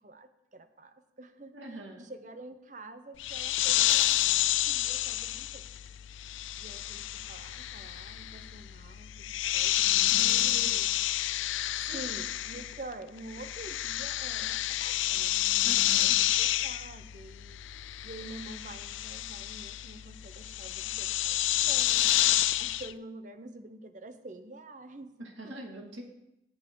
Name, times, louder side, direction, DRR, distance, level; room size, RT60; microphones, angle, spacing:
voice 1, 0.0-1.5 2.0-4.2 4.6-5.7 6.6-10.9 11.9-15.4 15.9-17.6 18.0-25.1 25.4-25.7, right 2 dB, 40° right, 9 dB, 0.8 m, -47 dB
voice 2, 1.5-2.1 10.0-10.9 11.8-12.1 15.6-16.2 25.2-26.0, right 1 dB, 80° right, 0 dB, 2.4 m, -44 dB
sound 1, 3.2-12.9 13.2-22.9, left 14 dB, 85° left, 0.4 m, -29 dB
17.0 x 7.4 x 3.9 m, 0.87 s
head